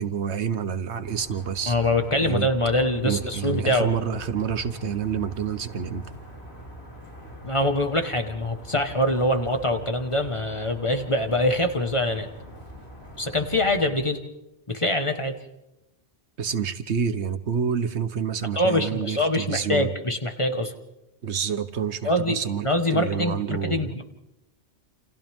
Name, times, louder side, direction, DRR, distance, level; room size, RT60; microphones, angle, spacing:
voice 1, 0.0-1.7 2.2-2.5 3.0-6.0 16.4-19.9 21.2-24.0, right 7 dB, 85° right, 12 dB, 1.4 m, -28 dB
sound 1, 1.0-13.9, right 1 dB, 70° left, 6.0 m, -43 dB
voice 2, 1.7-3.9 7.4-12.3 13.2-14.2 14.7-15.4 18.6-20.7 22.0-22.4 22.6-24.0, left 1 dB, 30° left, 5 dB, 1.6 m, -24 dB
29.0 x 28.5 x 3.7 m, 0.92 s
omnidirectional pair, 1.1 m